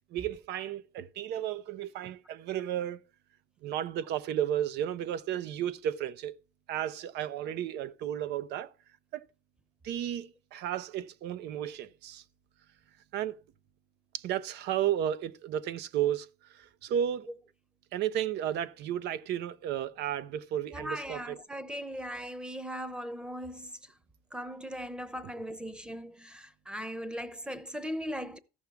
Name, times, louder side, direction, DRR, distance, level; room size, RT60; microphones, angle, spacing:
voice 1, 0.1-3.0 3.6-6.3 6.7-8.7 9.1-9.2 9.8-12.2 13.1-13.4 14.1-17.3 17.9-21.4, right 10 dB, 80° right, 0.8 m, -33 dB
voice 2, 20.7-23.8 24.3-28.4, equal, 5° right, 0.8 m, -39 dB
14.5 x 5.5 x 4.6 m
cardioid pair, 110°, 17 cm